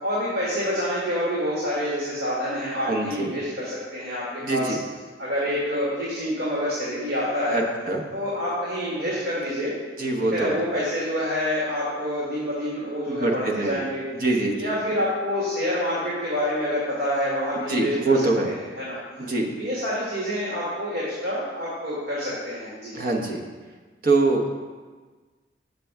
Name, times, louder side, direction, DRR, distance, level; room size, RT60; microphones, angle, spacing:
voice 1, 0.0-4.7 5.2-7.6 8.1-9.7 10.3-14.0 14.6-17.9 18.4-19.0 19.6-23.0, equal, 75° right, -8 dB, 2.0 m, -27 dB
voice 2, 2.8-3.3 4.4-4.8 7.5-8.0 10.0-10.6 13.1-13.8 14.1-14.8 17.6-18.5 19.2-19.5 22.9-23.4 24.0-24.5, right 2 dB, 50° right, 1 dB, 1.0 m, -24 dB
7.4 x 6.8 x 3.4 m, 1.4 s
head